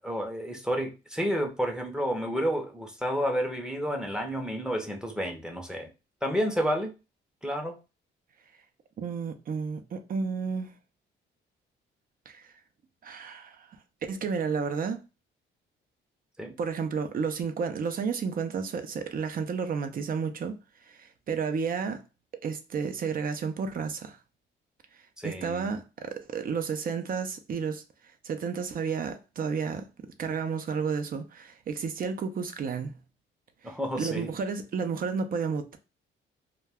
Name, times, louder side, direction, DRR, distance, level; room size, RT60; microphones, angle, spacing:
voice 1, 0.0-5.9 6.2-6.9 7.4-7.7 16.4-16.5 25.2-25.7 33.6-34.3, equal, 5° right, 0.7 m, -30 dB
voice 2, 9.0-10.8 12.3-12.5 13.0-13.7 14.1-15.0 16.6-20.6 20.9-22.0 22.4-24.2 25.2-27.8 28.2-29.8 30.2-33.0 33.6-35.8, right 5 dB, 45° right, 0.5 m, -31 dB
2.2 x 2.2 x 3.4 m
cardioid pair, 90°, 20 cm